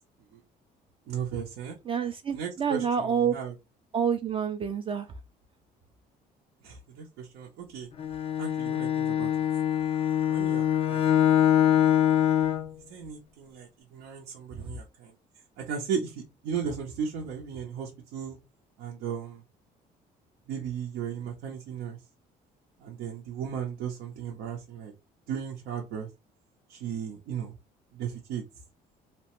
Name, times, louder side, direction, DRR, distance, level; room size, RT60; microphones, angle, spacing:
voice 1, 1.1-1.8 2.3-3.5 6.6-7.9 8.4-9.3 10.3-11.2 12.9-15.1 15.6-18.4 18.8-19.4 20.5-22.0 22.8-24.9 25.3-26.1 26.7-27.5 27.9-28.4, right 7 dB, 85° right, 0.7 m, -36 dB
voice 2, 1.9-3.4 3.9-5.1, right 7 dB, 30° right, 0.4 m, -27 dB
Bowed string instrument, 8.0-12.7, left 10 dB, 35° left, 0.4 m, -24 dB
3.0 x 2.1 x 2.9 m
cardioid pair, 110°, 17 cm